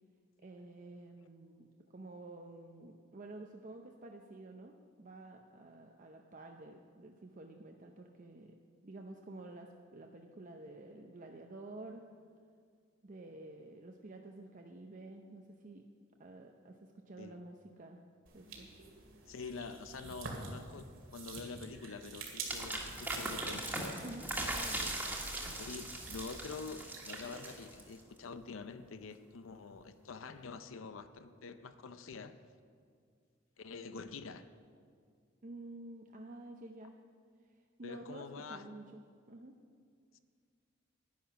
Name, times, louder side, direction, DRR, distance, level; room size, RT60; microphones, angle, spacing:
voice 1, 0.4-1.7 1.9-8.5 8.8-12.0 13.0-15.8 16.2-18.0 18.3-18.7 24.0-25.0 35.4-36.9 37.8-39.6, right 2 dB, 40° right, 2 dB, 0.6 m, -50 dB
sound 1, 18.3-28.0, right 4 dB, 85° right, 2.2 m, -48 dB
voice 2, 19.3-23.7 25.6-32.4 33.6-34.5 37.8-38.6, left 4 dB, 85° left, 11 dB, 0.6 m, -46 dB
sound 2, 22.5-28.0, right 1 dB, 10° right, 1.5 m, -39 dB
10.5 x 10.5 x 5.9 m, 2.1 s
head